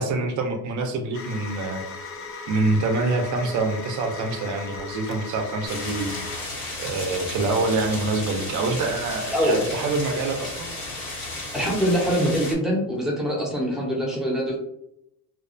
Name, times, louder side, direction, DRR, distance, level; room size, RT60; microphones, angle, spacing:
voice 1, 0.0-1.8 2.5-6.1 6.8-10.7, right 3 dB, 55° right, 4 dB, 0.4 m, -26 dB
sound 1, 1.1-6.4, left 4 dB, 40° left, 0.4 m, -37 dB
sound 2, 5.7-12.5, left 2 dB, 75° left, 1.3 m, -34 dB
voice 2, 11.5-14.6, equal, ahead, -4 dB, 0.6 m, -24 dB
2.4 x 2.2 x 2.4 m, 0.79 s
cardioid pair, 145°, 36 cm